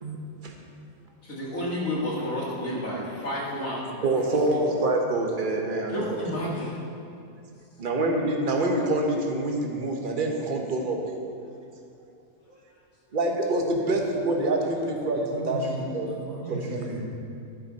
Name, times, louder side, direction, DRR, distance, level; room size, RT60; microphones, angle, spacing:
voice 1, 1.2-4.7 5.9-6.8, left 1 dB, 60° left, -5 dB, 2.5 m, -31 dB
voice 2, 4.0-6.2 7.8-11.0 13.1-15.6 15.9-16.1 16.5-16.8, right 2 dB, 35° right, 1 dB, 1.2 m, -26 dB
voice 3, 14.9-17.0, right 2 dB, 55° right, -10 dB, 2.6 m, -35 dB
12.0 x 10.0 x 4.2 m, 2.5 s
omnidirectional pair, 1.6 m